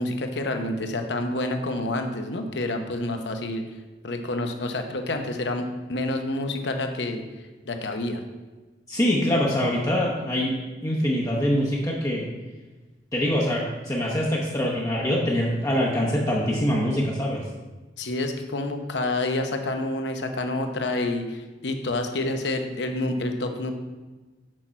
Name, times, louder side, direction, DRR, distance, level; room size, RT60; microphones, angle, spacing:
voice 1, 0.0-3.6 4.0-7.2 7.7-8.2 18.0-23.7, left 2 dB, 70° left, 5 dB, 0.8 m, -28 dB
voice 2, 8.9-10.6 10.8-12.2 13.1-17.4, equal, 20° left, -4 dB, 0.8 m, -24 dB
6.3 x 6.0 x 4.4 m, 1.2 s
head